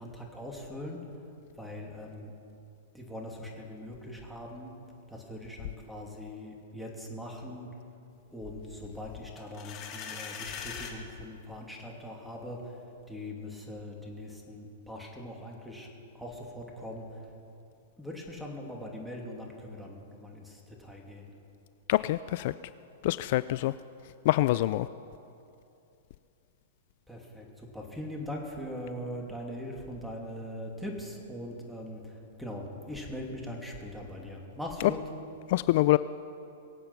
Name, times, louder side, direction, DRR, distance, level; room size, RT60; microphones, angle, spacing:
voice 1, 0.0-2.3 2.9-4.7 5.1-7.8 8.3-17.4 18.0-21.3 27.1-35.0, left 1 dB, ahead, 0 dB, 2.8 m, -41 dB
sound 1, 9.4-11.0, left 7 dB, 35° left, 2.2 m, -40 dB
voice 2, 21.9-22.5 23.0-23.7 24.2-24.9 35.5-36.0, left 17 dB, 55° left, 15 dB, 0.3 m, -25 dB
23.0 x 8.5 x 5.9 m, 2.7 s
hypercardioid pair, 115°, 0 cm